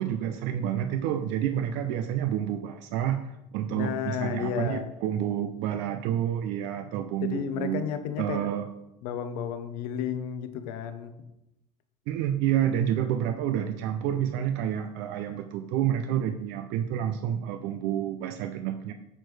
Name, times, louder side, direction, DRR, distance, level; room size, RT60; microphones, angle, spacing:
voice 1, 0.0-7.8 8.2-8.7 12.1-18.9, right 10 dB, 60° right, 8 dB, 0.5 m, -29 dB
voice 2, 3.7-4.9 7.2-8.5 9.0-11.2, left 8 dB, 70° left, 9 dB, 0.8 m, -32 dB
8.6 x 4.5 x 3.3 m, 0.89 s
hypercardioid pair, 90°, 20 cm